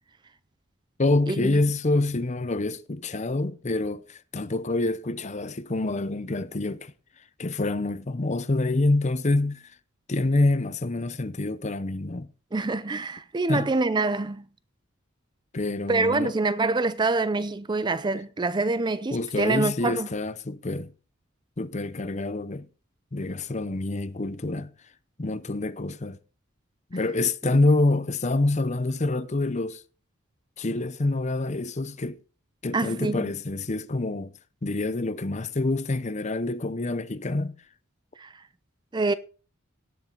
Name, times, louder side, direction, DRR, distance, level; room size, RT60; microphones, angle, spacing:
voice 1, 1.0-6.9 7.4-9.7 10.1-12.3 13.5-13.7 15.5-16.3 19.1-20.9 21.6-22.7 23.1-24.7 25.2-26.2 26.9-29.8 30.6-32.2 32.6-34.3 34.6-37.5, left 2 dB, 35° left, 0.7 m, -26 dB
voice 2, 12.5-14.5 15.9-20.1 32.7-33.2 38.2-38.3 38.9-39.1, right 3 dB, 20° right, 0.4 m, -25 dB
17.5 x 7.3 x 3.9 m
head